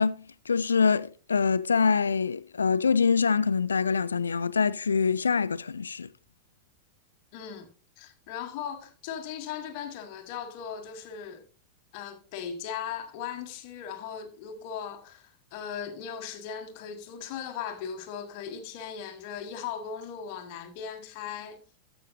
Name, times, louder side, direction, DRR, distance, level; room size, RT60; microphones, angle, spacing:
voice 1, 0.0-6.1, left 5 dB, 75° left, 0.3 m, -25 dB
voice 2, 7.3-7.7 8.0-11.4 11.9-21.6, left 8 dB, 45° left, 1.3 m, -38 dB
13.5 x 6.4 x 2.7 m
figure-of-eight pair, 90°, 0 cm